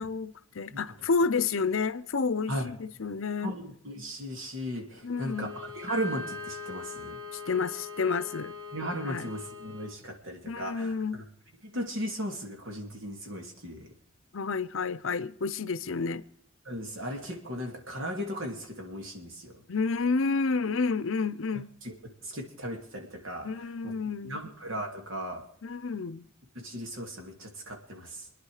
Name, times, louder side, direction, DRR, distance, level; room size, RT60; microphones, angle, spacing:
voice 1, 0.0-3.5 5.0-5.6 7.3-8.6 9.0-9.3 10.5-11.2 14.3-16.2 19.7-21.7 23.4-24.4 25.6-26.3, left 4 dB, 65° left, 0.7 m, -30 dB
voice 2, 3.4-7.2 8.7-11.2 11.6-13.9 16.6-19.6 21.8-21.9 22.2-23.5 23.8-23.9 24.2-25.4 26.5-28.3, equal, 60° right, 2.7 m, -36 dB
Bowed string instrument, 5.1-10.0, left 5 dB, 75° right, 1.9 m, -43 dB
Piano, 5.9-8.0, equal, 35° right, 1.4 m, -42 dB
27.0 x 10.0 x 4.9 m
head